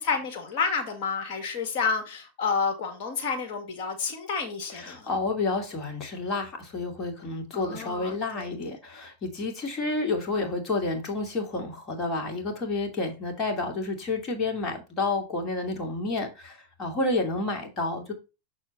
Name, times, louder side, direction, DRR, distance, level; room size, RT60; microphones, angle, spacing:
voice 1, 0.0-5.1 7.5-8.7, left 5 dB, 50° left, 2.0 m, -30 dB
voice 2, 4.7-18.1, left 3 dB, 35° left, 2.4 m, -30 dB
6.7 x 4.4 x 4.1 m
hypercardioid pair, 105°, 0 cm